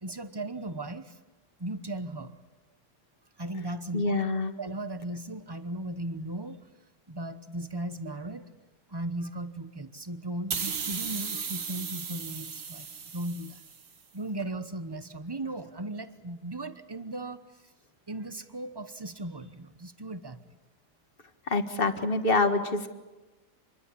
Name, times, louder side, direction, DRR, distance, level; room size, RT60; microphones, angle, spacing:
voice 1, 0.0-1.2 1.6-2.4 3.4-4.2 4.6-6.6 7.1-8.5 8.9-12.9 13.1-13.6 14.1-17.4 18.1-20.4, right 1 dB, 20° right, 11 dB, 0.8 m, -37 dB
voice 2, 3.9-4.5 21.5-22.9, left 3 dB, 35° left, 7 dB, 1.9 m, -26 dB
sound 1, 10.5-13.9, right 6 dB, 55° right, 1.7 m, -36 dB
27.0 x 22.0 x 8.5 m, 1.1 s
omnidirectional pair, 1.8 m